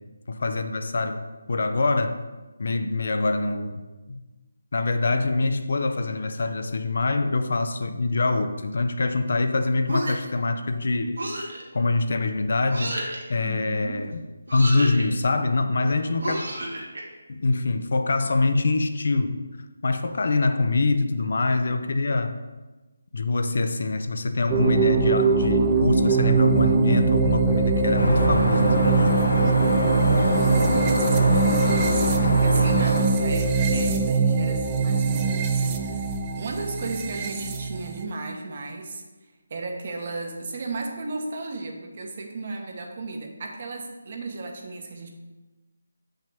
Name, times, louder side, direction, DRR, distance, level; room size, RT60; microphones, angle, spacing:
voice 1, 0.3-1.2 1.5-2.2 2.6-4.2 4.7-11.3 11.7-13.0 13.3-14.2 14.5-16.5 17.3-19.4 19.8-22.4 23.1-29.4, left 3 dB, 60° left, 8 dB, 0.6 m, -24 dB
sound 1, 9.9-10.4 11.2-11.6 12.7-13.2 14.5-15.0 16.2-17.0, right 1 dB, 75° right, 1.9 m, -31 dB
voice 2, 13.4-14.1 30.0-31.7 32.2-36.1 36.3-39.0 39.5-45.1, right 3 dB, 45° right, 2 dB, 1.2 m, -35 dB
sound 2, 24.5-38.0, right 4 dB, 25° right, 0.6 m, -22 dB
sound 3, 28.0-33.0, left 1 dB, 85° left, 1.6 m, -25 dB
7.6 x 5.6 x 3.5 m, 1.2 s
figure-of-eight pair, 155°, 0 cm